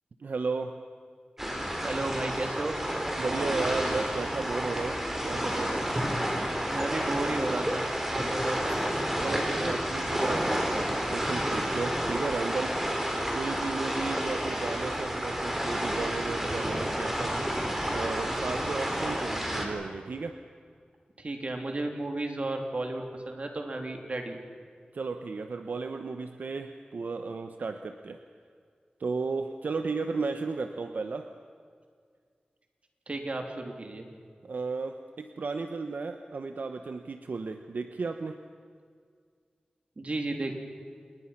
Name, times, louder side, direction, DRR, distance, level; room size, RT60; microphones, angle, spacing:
voice 1, 0.2-0.8 3.2-5.8 9.2-12.8 13.3-17.5 17.9-20.4 24.9-28.2 29.0-31.3 34.4-38.4, right 4 dB, 75° right, 7 dB, 1.0 m, -34 dB
sound 1, 1.4-19.6, equal, 10° right, 4.2 m, -30 dB
voice 2, 1.8-2.8 6.7-9.1 21.2-24.4 33.1-34.1 40.0-40.5, right 2 dB, 50° right, 3 dB, 3.5 m, -33 dB
28.5 x 21.0 x 6.0 m, 2.1 s
wide cardioid pair, 90°, 3 cm